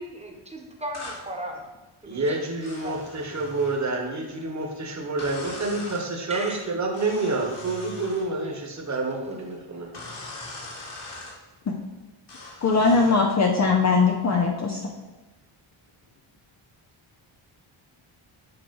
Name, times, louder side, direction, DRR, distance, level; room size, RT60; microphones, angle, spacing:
voice 1, 0.0-1.7 2.0-2.4 2.8-2.9 6.3-6.7 10.1-10.2, right 1 dB, 15° right, 1 dB, 1.2 m, -36 dB
sound 1, 0.9-1.2 2.6-3.8 5.2-6.1 6.9-8.3 9.9-11.4 12.3-13.2, left 2 dB, 55° left, 2.4 m, -40 dB
voice 2, 2.0-9.9, right 2 dB, 35° right, 1 dB, 1.3 m, -28 dB
voice 3, 12.6-14.9, left 4 dB, 35° left, 1 dB, 0.7 m, -21 dB
8.0 x 3.3 x 5.3 m, 1.2 s
wide cardioid pair, 120°, 50 cm